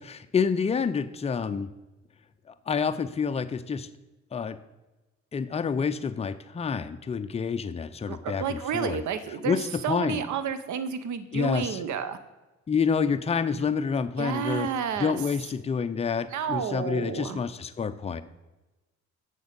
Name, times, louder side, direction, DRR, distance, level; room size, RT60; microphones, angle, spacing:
voice 1, 0.0-1.7 2.7-3.9 4.3-4.6 5.3-9.0 9.4-10.2 11.3-11.8 12.7-14.7 15.0-18.2, left 6 dB, 20° left, 10 dB, 0.5 m, -28 dB
voice 2, 8.1-12.2 14.2-15.2 16.3-17.4, right 7 dB, 75° right, 12 dB, 0.8 m, -31 dB
7.0 x 6.4 x 5.2 m, 1.1 s
cardioid pair, 90°, 30 cm